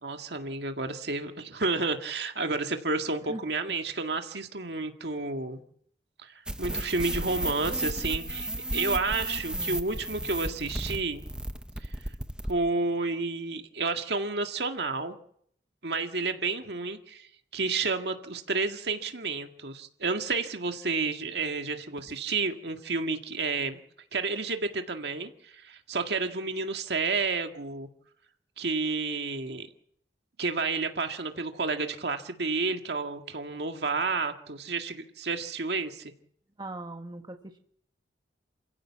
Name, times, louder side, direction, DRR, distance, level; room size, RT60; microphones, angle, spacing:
voice 1, 0.0-5.6 6.2-11.2 11.8-11.9 12.5-15.1 15.8-23.8 24.1-27.9 28.6-29.7 30.4-36.1, right 3 dB, 65° right, 5 dB, 1.9 m, -31 dB
sound 1, 6.5-12.6, right 1 dB, 5° right, 0.8 m, -33 dB
voice 2, 36.6-37.6, right 2 dB, 25° right, 5 dB, 1.5 m, -40 dB
28.0 x 16.0 x 7.4 m, 0.67 s
head